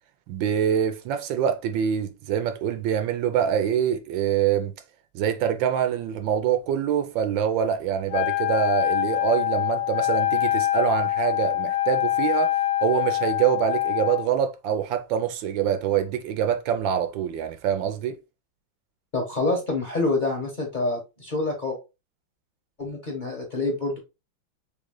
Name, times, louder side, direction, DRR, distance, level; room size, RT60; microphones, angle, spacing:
voice 1, 0.3-4.7 5.1-12.5 12.8-18.2, right 9 dB, 75° right, 1.3 m, -25 dB
Wind instrument woodwind instrument, 8.1-14.3, left 14 dB, 50° left, 0.7 m, -24 dB
voice 2, 19.1-21.8 22.8-24.0, left 2 dB, 30° left, 1.1 m, -27 dB
3.7 x 3.7 x 3.7 m
omnidirectional pair, 2.2 m